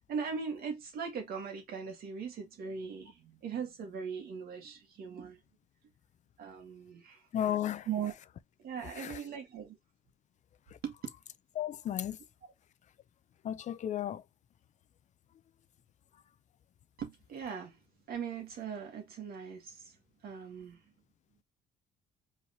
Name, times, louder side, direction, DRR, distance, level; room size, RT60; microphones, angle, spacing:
voice 1, 0.1-5.4 6.4-7.2 7.9-8.1 8.6-9.8 10.8-10.9 17.0-17.8 18.1-20.0 20.2-20.8, right 6 dB, 65° right, 1.8 m, -39 dB
voice 2, 7.3-7.9 9.0-9.2 11.5-12.2 13.4-14.2, left 10 dB, 45° left, 0.5 m, -34 dB
4.6 x 3.5 x 2.7 m
cardioid pair, 110°, 17 cm